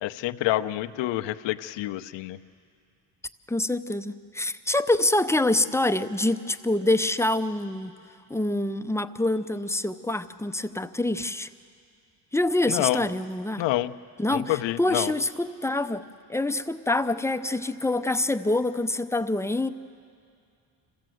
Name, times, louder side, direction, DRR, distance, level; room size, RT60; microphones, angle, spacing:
voice 1, 0.0-2.4 12.7-13.0 13.6-13.9 14.3-15.1, left 15 dB, 75° left, 10 dB, 0.8 m, -27 dB
voice 2, 3.5-7.9 8.3-11.5 12.3-13.6 14.2-19.7, left 2 dB, 5° left, 8 dB, 0.6 m, -26 dB
26.5 x 15.5 x 7.8 m, 2.3 s
cardioid pair, 95°, 44 cm